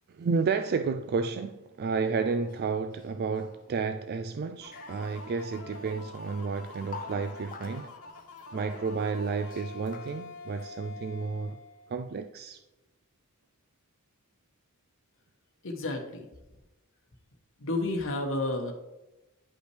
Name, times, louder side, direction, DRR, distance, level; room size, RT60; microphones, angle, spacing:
voice 1, 0.1-7.9 8.5-11.6 11.9-12.6, right 4 dB, 45° right, 0.3 m, -31 dB
sound 1, 2.2-4.0 4.3-5.2 6.2-6.3 6.7-8.8 9.3-10.7, left 6 dB, 40° left, 0.6 m, -49 dB
sound 2, 4.6-12.2, left 3 dB, 75° left, 1.1 m, -46 dB
voice 2, 15.6-16.3 17.6-18.7, left 2 dB, 60° left, 1.1 m, -31 dB
10.5 x 5.3 x 3.3 m
head